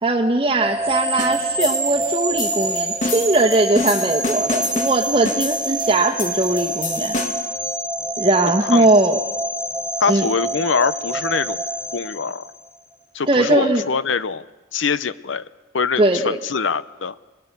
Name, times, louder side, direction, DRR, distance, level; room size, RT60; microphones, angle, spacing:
voice 1, 0.0-7.2 8.2-9.2 10.1-10.3 13.3-13.8 16.0-16.4, right 2 dB, 25° right, -2 dB, 1.3 m, -19 dB
sound 1, 0.6-12.8, right 2 dB, 5° right, 3.2 m, -26 dB
sound 2, 1.2-7.6, left 3 dB, 40° left, 2.0 m, -29 dB
voice 2, 10.0-11.6 11.9-12.5 13.1-14.5 14.7-15.5 15.7-17.1, left 5 dB, 75° left, 15 dB, 0.7 m, -23 dB
27.5 x 20.0 x 6.8 m, 1.2 s
head